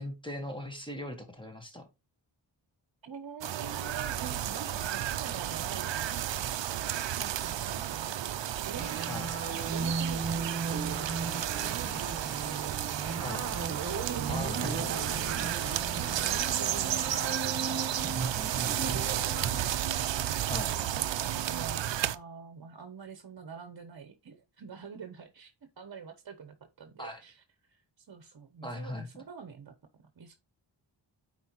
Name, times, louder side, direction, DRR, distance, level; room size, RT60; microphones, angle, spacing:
voice 1, 0.0-1.9 9.1-9.3 13.2-13.4 14.3-14.9 20.5-20.7 27.0-27.2 28.6-29.1, left 1 dB, 10° left, 1.5 m, -38 dB
voice 2, 3.0-6.3 7.1-13.1 14.1-19.1 20.4-29.7 30.2-30.3, right 6 dB, 55° right, 0.9 m, -46 dB
sound 1, 3.4-22.2, right 11 dB, 70° right, 0.6 m, -32 dB
sound 2, 8.8-19.6, right 4 dB, 35° right, 1.1 m, -36 dB
9.6 x 4.4 x 2.9 m
wide cardioid pair, 80°, 45 cm